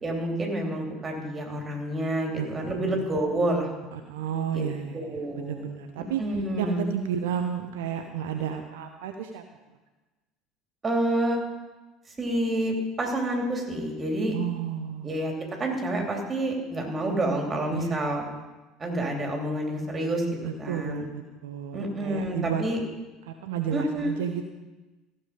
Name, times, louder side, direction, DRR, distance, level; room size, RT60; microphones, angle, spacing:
voice 1, 0.0-3.7 4.5-4.6 4.9-6.8 10.8-11.4 12.2-14.3 15.0-15.3 15.6-18.2 18.8-20.3 20.6-21.1 21.7-22.8 23.7-24.1, right 1 dB, 25° right, 1 dB, 2.9 m, -28 dB
voice 2, 2.4-3.0 3.9-6.2 6.6-9.4 14.3-15.2 17.7-18.1 20.4-22.6 23.3-24.4, right 8 dB, 65° right, 5 dB, 0.7 m, -32 dB
15.0 x 7.0 x 5.2 m, 1.2 s
figure-of-eight pair, 65°, 0 cm